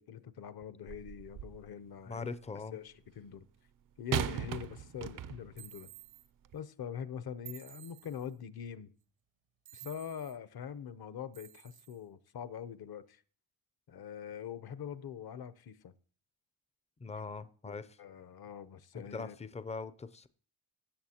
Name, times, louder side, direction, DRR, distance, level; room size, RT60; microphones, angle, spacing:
voice 1, 0.0-2.4 2.7-3.5 4.0-5.9 6.5-8.9 9.7-13.2 13.9-15.9 17.1-17.2 17.7-19.3, left 8 dB, 55° left, 0.8 m, -44 dB
sound 1, 0.9-1.7 4.1-5.6 6.4-6.6, right 9 dB, 45° right, 0.5 m, -37 dB
voice 2, 2.1-2.8 17.0-18.0 18.9-20.3, left 4 dB, 15° left, 0.4 m, -41 dB
sound 2, 5.6-6.3 7.4-8.3 9.6-10.4 11.3-12.0, right 13 dB, 75° right, 0.9 m, -52 dB
17.0 x 7.0 x 2.9 m
wide cardioid pair, 125°, 46 cm